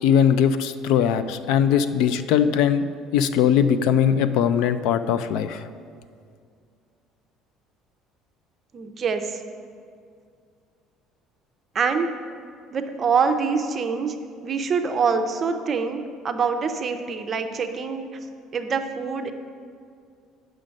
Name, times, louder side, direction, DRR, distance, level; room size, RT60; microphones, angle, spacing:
voice 1, 0.0-2.8 3.1-5.6, left 8 dB, 70° left, 11 dB, 0.4 m, -20 dB
voice 2, 8.7-9.4 11.7-12.1 12.7-14.2 14.4-18.1 18.5-19.3, right 5 dB, 25° right, 7 dB, 0.5 m, -25 dB
9.0 x 6.3 x 5.2 m, 2.2 s
cardioid pair, 175°, 0 cm